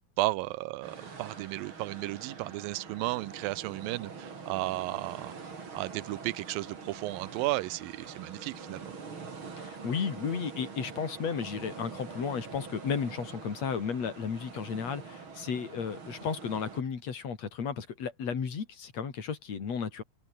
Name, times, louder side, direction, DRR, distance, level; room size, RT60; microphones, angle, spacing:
voice 1, 0.2-5.3 5.7-8.9, right 20 dB, 85° right, 2.3 m, -34 dB
sound 1, 0.8-16.8, right 5 dB, 35° right, 3.7 m, -45 dB
voice 2, 9.6-20.0, left 6 dB, 50° left, 4.2 m, -34 dB
open air
omnidirectional pair, 4.1 m